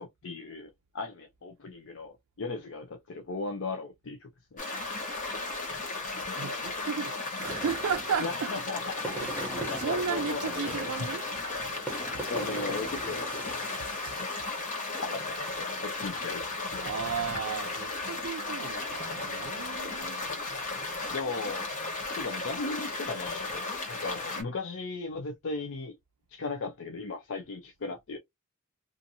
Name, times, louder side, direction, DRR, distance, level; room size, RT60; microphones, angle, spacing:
voice 1, 0.0-4.6 8.2-9.1 9.7-10.9 12.3-13.6 15.0-16.6 21.1-21.7 22.1-26.0 26.3-28.2, left 3 dB, 60° left, 0.5 m, -37 dB
sound 1, 4.6-24.4, left 3 dB, 35° left, 0.9 m, -35 dB
voice 2, 6.4-8.5 9.2-11.3 16.8-20.2, right 6 dB, 70° right, 0.4 m, -34 dB
sound 2, 7.4-14.7, right 2 dB, 10° left, 0.6 m, -41 dB
2.6 x 2.5 x 2.7 m
head